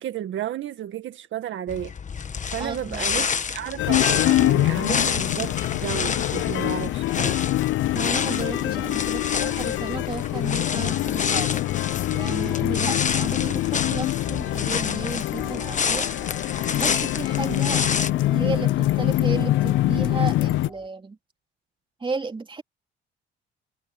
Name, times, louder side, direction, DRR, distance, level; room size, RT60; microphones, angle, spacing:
voice 1, 0.0-1.9 2.5-7.4, right 11 dB, 75° right, 1.9 m, -32 dB
sound 1, 1.7-18.1, left 6 dB, 40° left, 1.3 m, -29 dB
voice 2, 2.6-3.3 7.9-11.6 12.1-16.1 16.7-17.8 18.3-21.2 22.0-22.6, right 4 dB, 25° right, 3.0 m, -33 dB
sound 2, 2.9-20.9, equal, ahead, 4.3 m, -44 dB
sound 3, 3.8-20.7, left 15 dB, 75° left, 0.4 m, -24 dB
cardioid pair, 90°, 20 cm